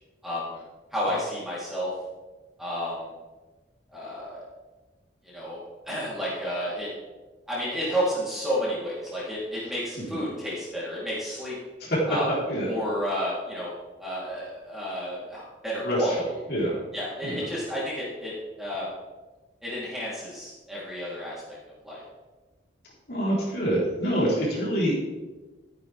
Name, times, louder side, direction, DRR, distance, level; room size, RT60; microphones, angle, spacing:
voice 1, 0.2-0.5 0.9-1.9 2.6-3.1 3.9-4.4 5.2-6.9 7.5-11.6 12.1-12.3 12.6-13.7 14.0-16.2 16.9-18.9 19.6-21.4 21.8-22.0, equal, ahead, -8 dB, 3.7 m, -31 dB
voice 2, 15.8-16.7 17.2-17.4 23.1-24.9, equal, 60° left, -6 dB, 4.3 m, -26 dB
14.0 x 9.7 x 3.6 m, 1.2 s
head